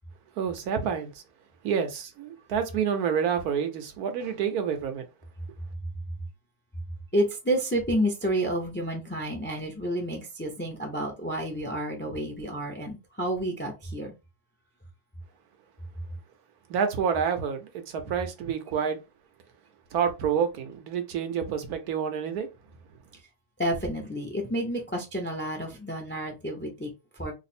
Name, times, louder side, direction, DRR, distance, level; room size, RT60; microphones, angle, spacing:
voice 1, 0.4-1.1 1.6-5.0 16.7-19.0 19.9-22.5, right 7 dB, 80° right, 1.2 m, -28 dB
voice 2, 7.1-14.1 23.6-27.3, right 1 dB, 15° left, 0.4 m, -30 dB
3.2 x 2.0 x 4.1 m
omnidirectional pair, 1.6 m